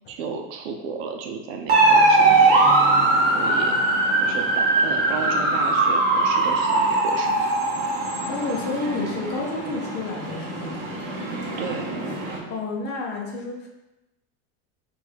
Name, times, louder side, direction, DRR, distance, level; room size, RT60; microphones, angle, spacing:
voice 1, 0.1-2.6 3.3-3.8 4.2-4.5 4.8-7.5 11.6-12.0, right 5 dB, 75° right, 4 dB, 0.7 m, -33 dB
sound 1, 1.7-12.4, right 2 dB, 45° right, 1.1 m, -21 dB
voice 2, 8.2-10.9 12.5-13.7, left 3 dB, 30° left, 0 dB, 0.7 m, -30 dB
3.7 x 2.6 x 4.5 m, 0.96 s
cardioid pair, 160°, 33 cm